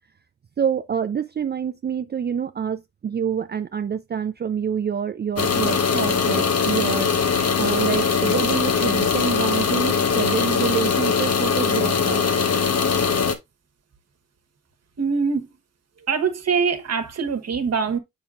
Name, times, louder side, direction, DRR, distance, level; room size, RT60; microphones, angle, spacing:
voice 1, 0.6-12.2, right 7 dB, 35° right, 0.5 m, -27 dB
sound 1, 5.4-13.3, left 6 dB, 55° left, 1.2 m, -21 dB
voice 2, 15.0-15.5 16.1-18.0, right 5 dB, 55° right, 1.4 m, -23 dB
7.1 x 5.9 x 2.5 m
cardioid pair, 65°, 30 cm